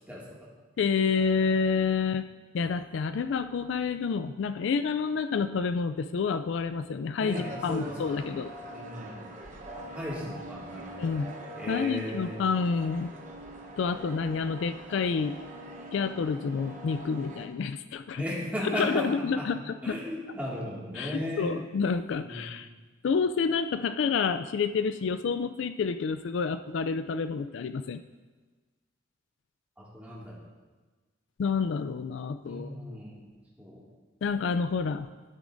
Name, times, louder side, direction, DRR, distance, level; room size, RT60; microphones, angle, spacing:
voice 1, 0.1-0.5 7.2-8.4 8.7-9.3 9.7-11.2 11.5-12.4 18.2-19.5 19.8-21.6 22.2-22.5 29.8-30.4 32.4-33.3 33.6-33.8, equal, 10° right, -6 dB, 2.1 m, -36 dB
voice 2, 0.8-2.2 2.5-8.5 11.0-11.3 11.7-13.1 13.8-15.4 15.9-18.2 18.6-20.0 21.0-22.7 23.0-28.0 31.4-32.7 34.2-35.1, left 5 dB, 70° left, 10 dB, 0.3 m, -29 dB
sound 1, 7.3-17.5, right 1 dB, 40° right, 1.0 m, -43 dB
11.5 x 9.9 x 2.6 m, 1.3 s
head